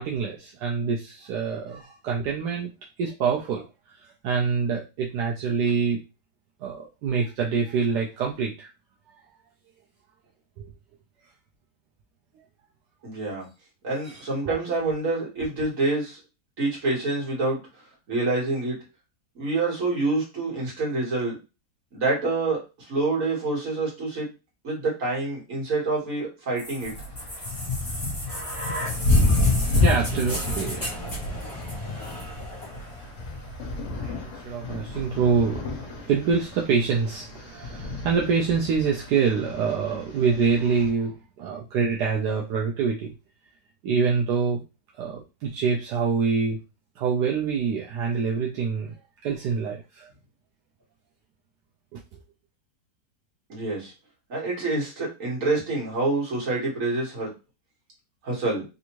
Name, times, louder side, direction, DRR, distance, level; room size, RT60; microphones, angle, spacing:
voice 1, 0.0-2.7 3.0-6.0 6.6-8.7 10.6-10.7 14.0-14.2 29.4-31.0 34.0-43.1 43.8-44.6 44.9-46.6 47.0-48.9 49.2-50.1 51.9-52.2, right 5 dB, 80° right, -2 dB, 1.2 m, -26 dB
voice 2, 13.0-13.5 13.8-16.2 16.6-17.6 18.1-18.8 19.4-21.4 21.9-24.3 24.6-26.9 53.5-53.9 54.3-57.3 58.2-58.6, right 3 dB, 55° right, -4 dB, 1.9 m, -27 dB
sound 1, 26.6-34.5 35.5-35.6, equal, 15° left, 0.9 m, -35 dB
sound 2, 26.8-40.9, left 2 dB, 55° left, 1.0 m, -29 dB
3.5 x 2.6 x 2.9 m, 0.28 s
omnidirectional pair, 1.8 m